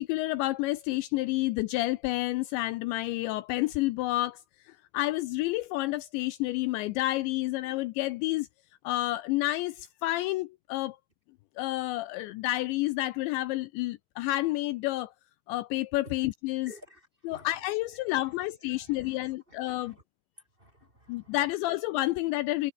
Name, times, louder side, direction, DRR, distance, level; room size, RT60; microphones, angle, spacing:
voice 1, 0.0-4.4 4.7-8.5 8.8-11.0 11.6-15.1 15.5-16.7 17.2-20.0 21.1-22.7, left 17 dB, 85° left, 2.7 m, -30 dB
voice 2, 16.7-17.5 18.1-20.0 20.6-21.4, equal, 10° right, 3.2 m, -53 dB
omnidirectional pair, 5.7 m